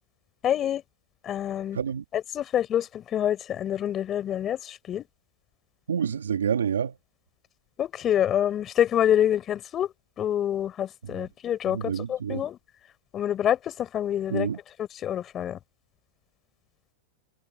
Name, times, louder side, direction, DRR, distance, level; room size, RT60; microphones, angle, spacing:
voice 1, 0.4-0.8 1.2-1.8 2.1-5.1 7.8-12.6 13.1-14.5 14.8-15.6, left 10 dB, 30° left, 4.9 m, -27 dB
voice 2, 5.9-6.9 11.0-11.3 11.7-12.4 14.3-14.6, right 7 dB, 90° right, 2.3 m, -28 dB
hypercardioid pair, 115°, 0 cm